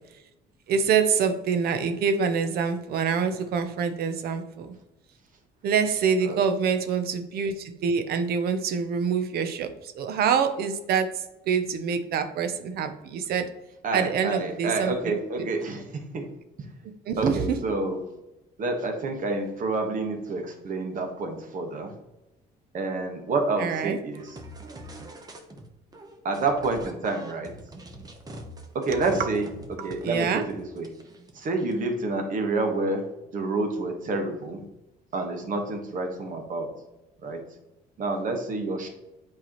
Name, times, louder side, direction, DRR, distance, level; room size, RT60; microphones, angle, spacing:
voice 1, 0.7-4.8 5.6-13.5 13.9-15.4 17.1-17.6 23.6-24.0 29.8-30.4, right 6 dB, 65° right, 8 dB, 0.8 m, -26 dB
voice 2, 13.8-16.2 16.6-16.7 17.2-18.0 18.6-22.0 22.7-24.4 26.2-27.5 28.7-30.9 31.3-33.0 33.3-34.7 35.1-36.7 37.2-37.4 38.0-38.9, right 3 dB, 50° right, 4 dB, 1.4 m, -28 dB
sound 1, 24.1-25.7 25.9-31.9, right 1 dB, 20° right, 1.0 m, -44 dB
8.3 x 4.8 x 3.1 m, 0.96 s
cardioid pair, 110°, 17 cm